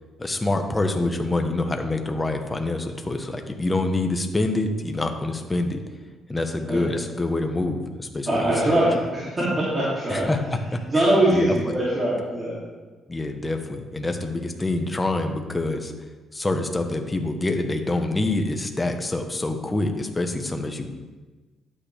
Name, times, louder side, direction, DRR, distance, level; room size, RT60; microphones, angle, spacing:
voice 1, 0.2-5.8 6.3-8.8 10.1-10.4 10.7-11.5 13.1-15.9 16.3-20.9, left 2 dB, 20° left, 5 dB, 1.1 m, -26 dB
voice 2, 8.3-10.3 10.9-12.5, right 1 dB, 25° right, -8 dB, 2.9 m, -22 dB
12.0 x 8.7 x 3.5 m, 1.3 s
cardioid pair, 90°, 0 cm